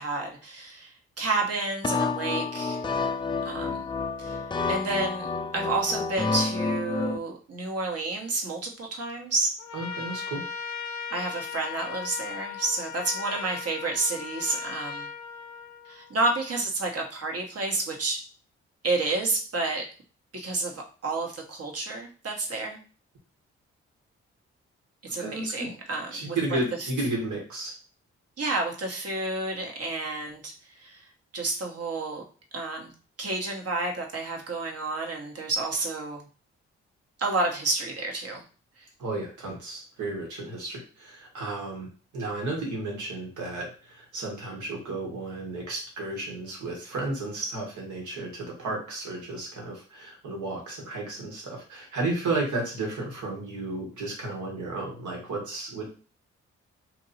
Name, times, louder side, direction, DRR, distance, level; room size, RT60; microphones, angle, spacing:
voice 1, 0.0-2.8 3.4-3.9 4.2-4.4 4.7-9.5 11.1-15.1 15.8-18.2 18.8-19.9 20.3-22.8 25.0-26.9 28.4-31.1 31.3-32.2 32.5-32.9 33.2-36.3 37.2-38.4 38.8-38.9, right 3 dB, 55° right, 1 dB, 1.2 m, -30 dB
sound 1, 1.8-7.2, left 4 dB, 15° left, 0.4 m, -29 dB
Trumpet, 9.6-16.1, left 6 dB, 65° left, 0.6 m, -37 dB
voice 2, 9.7-10.4 25.2-27.7 39.0-41.9 42.1-55.9, right 2 dB, 75° right, -1 dB, 1.5 m, -33 dB
2.9 x 2.6 x 4.1 m, 0.37 s
supercardioid pair, 45°, 30 cm